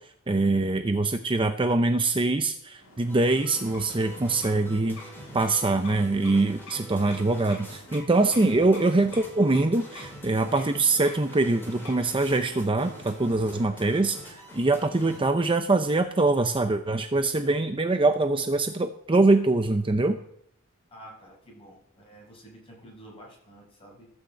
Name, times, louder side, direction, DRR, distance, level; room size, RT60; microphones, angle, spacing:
voice 1, 0.3-5.0 5.3-20.2, right 2 dB, 25° right, 7 dB, 0.6 m, -23 dB
sound 1, 2.7-14.5, left 2 dB, 60° left, 5.6 m, -49 dB
sound 2, 3.1-15.2, equal, 10° left, 4.0 m, -45 dB
voice 2, 20.9-24.1, right 1 dB, 25° left, -2 dB, 5.9 m, -49 dB
14.5 x 6.5 x 7.7 m, 0.70 s
head